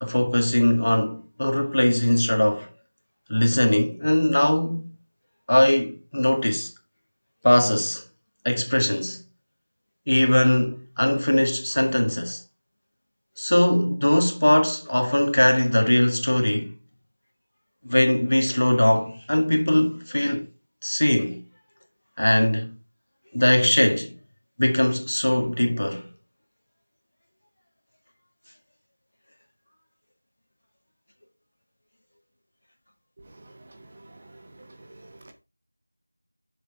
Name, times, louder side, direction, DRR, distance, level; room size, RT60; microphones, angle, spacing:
voice 1, 0.0-2.7 3.3-4.9 5.5-6.7 7.4-8.0 8.4-9.2 10.1-12.4 13.4-16.7 17.8-20.5 20.8-21.4 22.2-22.7 23.3-24.2 24.6-26.1, left 1 dB, 65° left, 2.1 m, -21 dB
voice 2, 33.3-35.3, right 2 dB, 20° right, 0.9 m, -49 dB
7.0 x 6.9 x 3.5 m
figure-of-eight pair, 175°, 0 cm